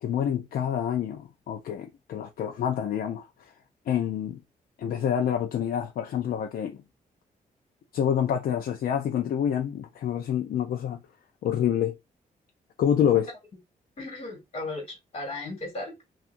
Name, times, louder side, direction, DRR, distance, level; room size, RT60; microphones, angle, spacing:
voice 1, 0.0-3.5 3.9-4.4 4.8-6.8 7.9-11.0 11.4-11.9 12.8-13.3, left 9 dB, 75° left, 0.5 m, -27 dB
voice 2, 14.0-16.0, left 2 dB, 40° left, 2.1 m, -36 dB
5.6 x 2.5 x 2.6 m
wide cardioid pair, 165°, 15 cm